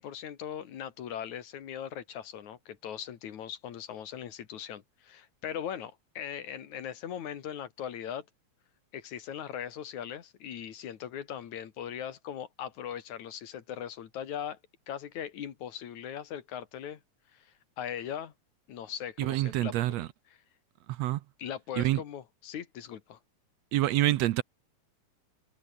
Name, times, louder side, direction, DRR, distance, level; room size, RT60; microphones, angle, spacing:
voice 1, 0.0-8.3 8.9-14.6 14.9-17.0 17.3-18.3 18.7-19.7 21.4-23.2, left 9 dB, 75° left, 3.2 m, -39 dB
voice 2, 19.2-20.1 20.9-21.2 21.8-22.0 23.7-24.4, right 15 dB, 75° right, 1.8 m, -27 dB
omnidirectional pair, 3.4 m